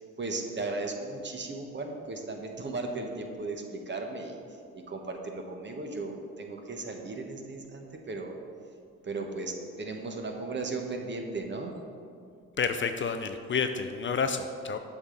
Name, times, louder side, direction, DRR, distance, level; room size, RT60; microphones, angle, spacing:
voice 1, 0.0-8.4 9.0-11.7, right 3 dB, 35° right, 3 dB, 1.1 m, -36 dB
voice 2, 12.6-14.8, left 5 dB, 40° left, 8 dB, 0.5 m, -29 dB
7.9 x 5.8 x 3.9 m, 2.4 s
supercardioid pair, 65°, 31 cm